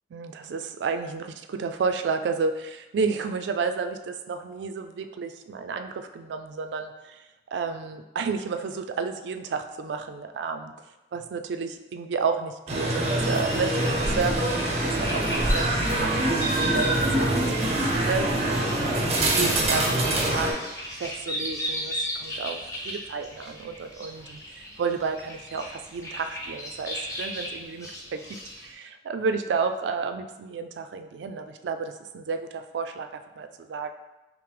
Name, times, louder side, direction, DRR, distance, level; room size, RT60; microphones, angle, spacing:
voice 1, 0.1-7.2 7.5-10.7 11.1-15.8 16.0-33.9, right 5 dB, 90° right, 7 dB, 0.3 m, -31 dB
sound 1, 12.7-20.5, right 1 dB, 35° right, 0.6 m, -24 dB
sound 2, 13.5-28.7, equal, 20° left, 0.7 m, -37 dB
5.7 x 2.0 x 3.3 m, 1.0 s
head